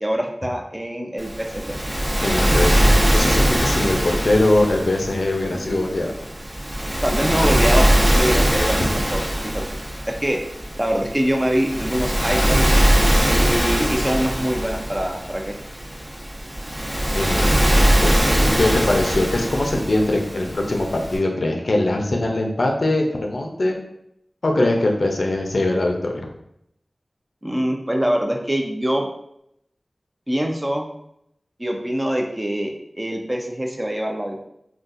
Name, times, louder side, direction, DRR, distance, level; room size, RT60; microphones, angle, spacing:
voice 1, 0.0-1.8 7.0-9.6 10.0-10.4 10.8-12.8 13.3-15.6 27.4-29.0 30.3-30.9 31.6-34.5, equal, 20° right, 2 dB, 0.4 m, -24 dB
Waves surf, 1.2-21.2, right 1 dB, 45° right, 0.9 m, -21 dB
voice 2, 2.2-6.1 17.1-18.1 18.4-23.8 24.4-26.3, left 1 dB, 75° left, 1 dB, 0.5 m, -22 dB
3.8 x 2.3 x 2.5 m, 0.76 s
wide cardioid pair, 75°, 0 cm